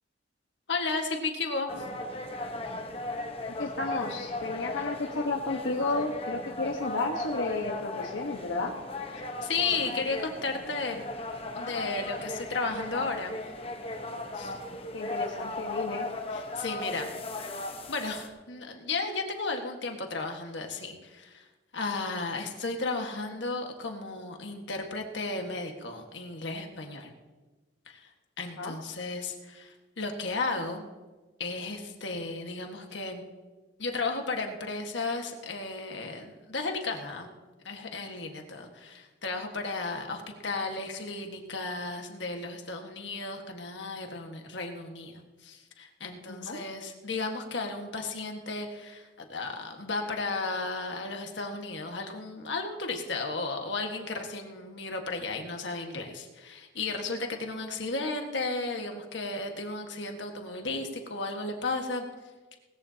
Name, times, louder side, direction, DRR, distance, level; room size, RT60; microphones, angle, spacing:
voice 1, 0.7-1.8 9.2-11.1 11.5-13.4 14.3-14.6 16.3-17.1 17.4-21.4 21.7-27.1 27.9-28.1 28.4-30.8 31.4-33.2 33.8-37.3 37.6-45.1 45.4-62.0, left 3 dB, 70° left, 3 dB, 1.6 m, -34 dB
sound 1, 1.7-18.3, left 2 dB, 30° left, 1.1 m, -37 dB
voice 2, 3.5-8.7 14.9-16.1 28.6-28.7 46.3-46.6, left 3 dB, 90° left, -1 dB, 1.3 m, -32 dB
19.0 x 14.5 x 2.9 m, 1.3 s
head